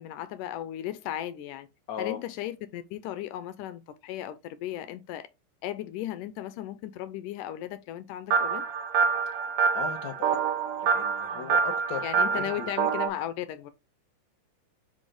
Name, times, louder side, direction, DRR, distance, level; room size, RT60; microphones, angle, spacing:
voice 1, 0.0-1.7 2.0-5.3 5.6-8.7 11.3-11.5 12.0-13.7, left 12 dB, 85° left, 2.2 m, -36 dB
voice 2, 1.9-2.2 9.7-10.4 10.8-12.7, left 8 dB, 65° left, 1.1 m, -37 dB
sound 1, 8.3-13.1, right 6 dB, 75° right, 1.3 m, -26 dB
5.2 x 4.3 x 4.9 m
omnidirectional pair, 3.8 m